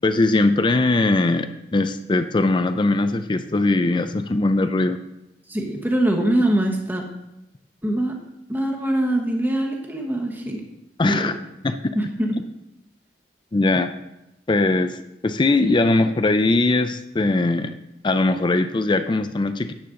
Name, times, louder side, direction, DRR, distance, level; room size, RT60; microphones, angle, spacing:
voice 1, 0.0-5.0 11.0-11.3 11.6-12.0 13.5-13.9 14.5-17.7 18.0-19.7, left 2 dB, 25° left, 10 dB, 0.4 m, -20 dB
voice 2, 5.5-7.0 7.8-8.1 8.5-10.6 11.1-11.3 11.9-12.3, right 1 dB, 10° right, 1 dB, 1.1 m, -23 dB
10.5 x 7.5 x 3.8 m, 0.92 s
head